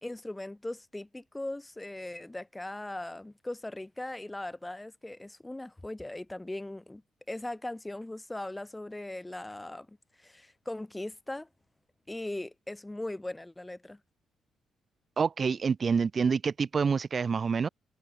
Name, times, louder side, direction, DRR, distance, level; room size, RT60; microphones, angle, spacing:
voice 1, 0.0-7.0 7.3-11.5 12.1-14.0, left 1 dB, 10° left, 3.4 m, -39 dB
voice 2, 15.2-17.7, right 5 dB, 40° right, 1.0 m, -27 dB
cardioid pair, 90°, 0 cm